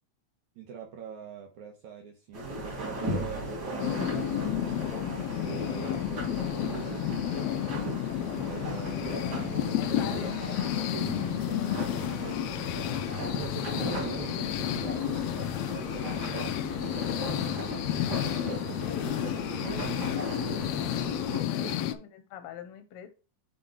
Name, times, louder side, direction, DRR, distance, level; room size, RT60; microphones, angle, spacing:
voice 1, 0.6-4.6 5.4-7.6 8.3-10.3 10.9-12.7 13.2-15.2 15.6-18.8 19.2-20.0 20.4-20.6 21.5-21.8, right 6 dB, 70° right, 1 dB, 2.4 m, -44 dB
sound 1, 2.3-21.4, right 1 dB, 35° right, 2.8 m, -37 dB
sound 2, 3.8-21.9, left 12 dB, 90° left, 1.4 m, -31 dB
voice 2, 9.7-10.3 11.6-11.7 18.8-19.1 19.6-20.1 21.3-23.1, left 9 dB, 65° left, 9 dB, 1.6 m, -44 dB
7.9 x 3.7 x 4.6 m, 0.32 s
omnidirectional pair, 3.6 m